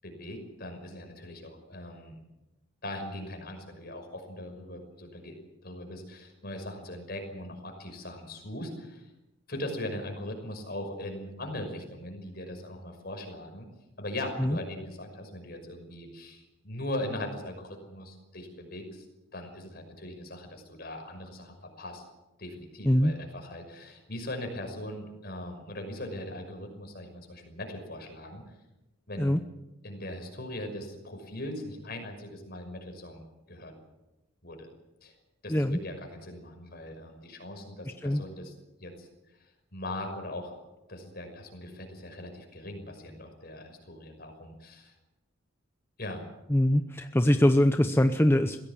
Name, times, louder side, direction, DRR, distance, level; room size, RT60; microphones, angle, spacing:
voice 1, 0.0-2.2 2.8-5.4 5.6-9.1 9.5-13.7 14.0-19.1 19.3-22.0 22.4-28.4 29.1-29.4 29.8-33.7 34.4-34.7 35.0-35.1 35.4-38.5 38.8-39.1 39.7-40.5 40.9-44.9 46.0-46.2, left 1 dB, 50° left, 4 dB, 6.0 m, -40 dB
voice 2, 35.5-35.8 38.0-38.2 46.5-48.6, left 1 dB, 10° left, 7 dB, 0.8 m, -23 dB
22.5 x 16.5 x 8.7 m, 0.98 s
head